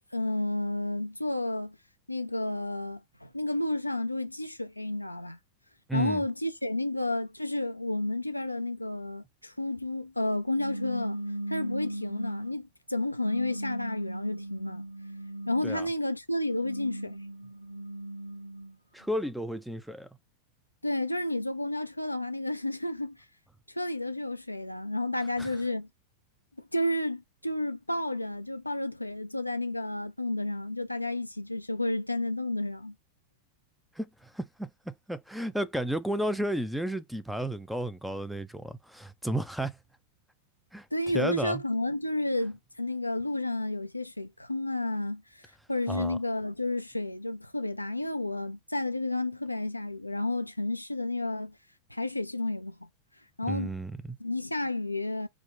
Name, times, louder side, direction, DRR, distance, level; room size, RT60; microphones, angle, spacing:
voice 1, 0.1-1.8 2.1-5.4 5.9-11.2 11.5-14.8 15.5-17.2 20.8-23.2 23.7-25.9 26.6-32.9 40.9-51.6 51.9-52.9 53.4-53.7 54.2-55.3, left 2 dB, 85° left, 0.3 m, -31 dB
voice 2, 5.9-6.2 15.6-15.9 18.9-20.1 25.4-25.5 34.0-39.7 40.7-40.9 41.1-41.6 45.9-46.2 53.5-54.2, right 1 dB, ahead, 0.5 m, -33 dB
sound 1, 10.5-12.6 13.2-15.9 16.5-18.7, right 1 dB, 90° right, 0.4 m, -37 dB
3.6 x 2.2 x 3.4 m
figure-of-eight pair, 90°, 0 cm